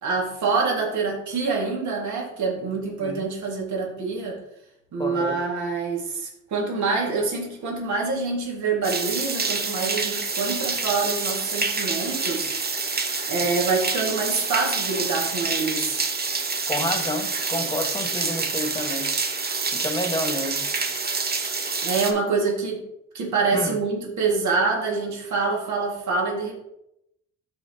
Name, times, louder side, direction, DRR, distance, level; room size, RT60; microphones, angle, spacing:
voice 1, 0.0-4.4 4.9-12.5 13.3-16.0 21.8-22.8 23.1-26.5, right 4 dB, 70° right, -2 dB, 2.0 m, -26 dB
voice 2, 5.0-5.4 16.7-19.1 19.8-20.7 23.5-23.7, left 1 dB, 15° left, 4 dB, 1.3 m, -29 dB
sound 1, 8.8-22.1, right 4 dB, 30° right, 1.1 m, -27 dB
13.0 x 4.4 x 2.8 m, 0.84 s
cardioid pair, 90°, 30 cm